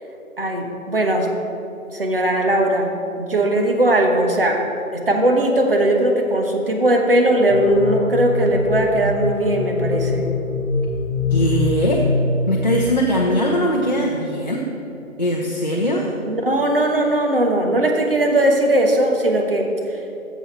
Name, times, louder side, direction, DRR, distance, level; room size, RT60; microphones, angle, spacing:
voice 1, 0.4-1.3 1.9-2.9 3.2-4.6 4.9-10.3 16.2-20.0, right 1 dB, 40° right, 2 dB, 1.1 m, -19 dB
sound 1, 7.5-12.9, left 3 dB, 55° left, 0.9 m, -23 dB
voice 2, 11.3-12.0 12.5-14.6 15.2-16.1, equal, 35° left, -3 dB, 0.7 m, -20 dB
11.0 x 7.2 x 4.3 m, 2.9 s
figure-of-eight pair, 165°, 42 cm